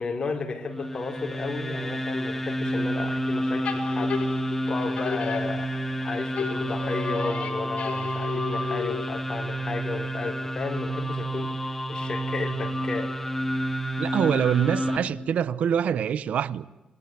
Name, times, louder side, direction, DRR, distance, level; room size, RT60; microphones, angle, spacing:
voice 1, 0.0-4.2 4.7-13.2, left 4 dB, 40° left, 3.9 m, -33 dB
sound 1, 0.7-15.0, right 1 dB, 15° left, 2.0 m, -29 dB
sound 2, 3.6-6.0 6.4-9.2, left 6 dB, 60° left, 4.4 m, -34 dB
voice 2, 14.0-16.7, right 8 dB, 70° right, 0.9 m, -25 dB
27.5 x 20.5 x 9.6 m
cardioid pair, 105°, 2 cm